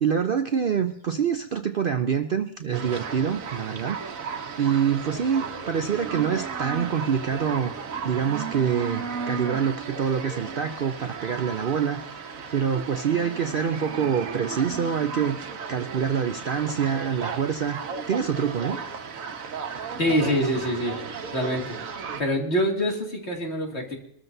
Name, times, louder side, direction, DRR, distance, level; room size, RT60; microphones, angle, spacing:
voice 1, 0.0-4.2 4.6-7.7 8.0-12.2 12.5-17.8 18.1-18.8, right 7 dB, 55° right, 8 dB, 0.7 m, -26 dB
sound 1, 2.7-22.2, right 5 dB, 75° right, 1.4 m, -35 dB
voice 2, 20.0-21.0 21.3-21.8 22.2-24.0, equal, 50° left, 0 dB, 2.7 m, -25 dB
24.5 x 13.5 x 2.7 m, 0.70 s
omnidirectional pair, 1.4 m